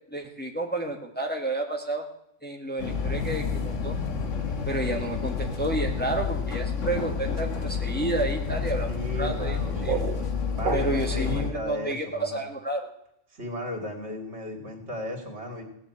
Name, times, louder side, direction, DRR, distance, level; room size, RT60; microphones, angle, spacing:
voice 1, 0.1-2.0 2.4-3.9 4.7-10.0 10.7-12.9, right 2 dB, 10° left, 2 dB, 1.5 m, -31 dB
sound 1, 2.8-11.5, left 5 dB, 85° left, 1.8 m, -29 dB
voice 2, 8.9-10.0 10.5-12.4 13.3-15.6, left 1 dB, 65° right, 3 dB, 2.9 m, -35 dB
sound 2, 9.4-11.3, right 5 dB, 45° right, 1.4 m, -32 dB
17.5 x 7.1 x 8.6 m, 0.76 s
omnidirectional pair, 1.2 m